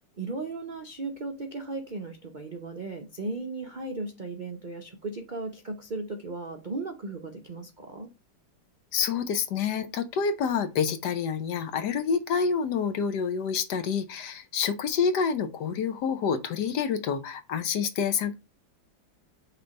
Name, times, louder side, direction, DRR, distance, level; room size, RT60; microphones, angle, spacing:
voice 1, 0.2-8.1, right 3 dB, 90° right, 0.4 m, -36 dB
voice 2, 8.9-18.3, left 6 dB, 70° left, 1.2 m, -28 dB
6.0 x 3.3 x 5.1 m
omnidirectional pair, 2.1 m